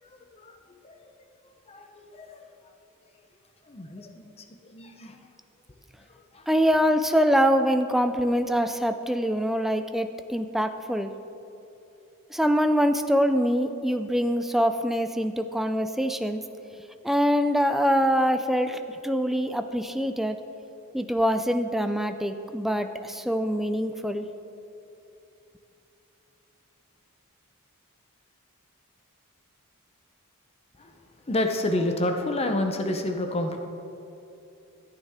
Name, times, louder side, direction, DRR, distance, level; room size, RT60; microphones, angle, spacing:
voice 1, 0.0-0.6 0.8-1.3 1.7-2.5 3.7-5.3 6.1-6.5 30.8-30.9 31.3-33.6, left 1 dB, 30° left, 4 dB, 0.7 m, -30 dB
voice 2, 6.5-11.1 12.3-16.4 17.0-20.4 20.9-24.3, equal, ahead, 8 dB, 0.4 m, -24 dB
14.0 x 9.0 x 3.6 m, 2.8 s
head